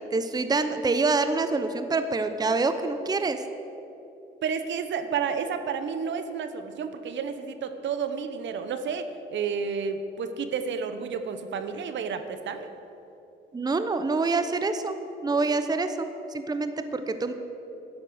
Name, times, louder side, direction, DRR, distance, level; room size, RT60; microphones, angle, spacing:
voice 1, 0.1-3.4 13.5-15.0 15.2-17.3, right 3 dB, 20° right, 10 dB, 0.7 m, -26 dB
voice 2, 4.4-12.7, right 6 dB, 70° right, 9 dB, 0.9 m, -31 dB
11.5 x 7.3 x 7.9 m, 2.9 s
cardioid pair, 90°, 20 cm